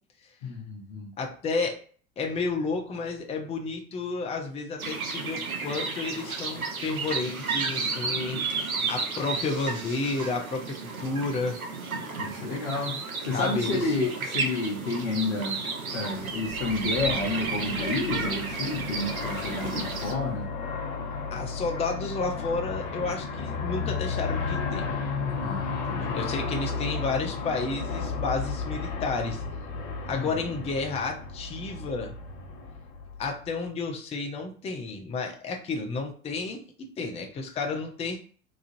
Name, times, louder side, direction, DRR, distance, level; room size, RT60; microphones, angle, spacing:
voice 1, 0.4-1.1 12.2-15.6 15.9-20.5 25.4-26.2 30.1-30.3, left 3 dB, 70° left, -3 dB, 0.8 m, -30 dB
voice 2, 1.2-1.8 2.2-8.4 8.8-11.6 13.3-13.8 21.3-24.9 26.1-29.4 30.0-32.1 33.2-38.2, left 3 dB, 15° left, 2 dB, 0.5 m, -31 dB
sound 1, 4.8-20.1, right 4 dB, 85° right, 0.6 m, -32 dB
Aircraft, 16.2-33.5, left 5 dB, 40° left, 0.9 m, -33 dB
3.0 x 2.4 x 2.6 m, 0.43 s
figure-of-eight pair, 70°, 42 cm